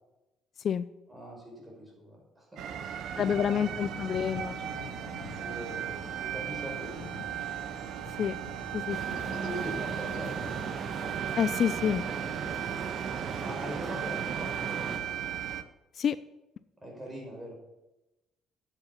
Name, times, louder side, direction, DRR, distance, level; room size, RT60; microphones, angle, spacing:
voice 1, 1.1-3.5 5.3-7.3 8.8-9.0 9.3-10.6 12.2-12.8 13.4-14.8 16.8-17.5, equal, 15° right, 0 dB, 5.6 m, -43 dB
sound 1, 2.6-15.6, right 10 dB, 65° right, 0.8 m, -37 dB
voice 2, 3.2-4.6 8.2-8.4 8.7-9.0 11.4-12.0 16.0-16.2, left 8 dB, 50° left, 15 dB, 0.4 m, -28 dB
sound 2, 3.3-14.5, left 9 dB, 80° left, 0.9 m, -51 dB
sound 3, 8.9-15.0, right 5 dB, 45° right, 1.4 m, -37 dB
10.5 x 8.2 x 7.1 m, 0.97 s
cardioid pair, 100°, 0 cm